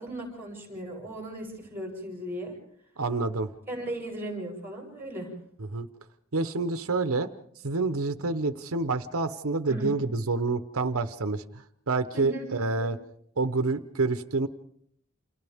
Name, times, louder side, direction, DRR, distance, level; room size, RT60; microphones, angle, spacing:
voice 1, 0.0-2.6 3.7-5.3 9.7-9.9 12.1-12.5 12.8-12.9, right 1 dB, 10° right, 0 dB, 7.8 m, -37 dB
voice 2, 3.0-3.5 5.7-5.9 6.3-7.3 7.6-11.4 11.9-13.0 13.4-14.5, right 3 dB, 85° right, 10 dB, 1.0 m, -27 dB
29.5 x 28.5 x 3.6 m, 0.68 s
head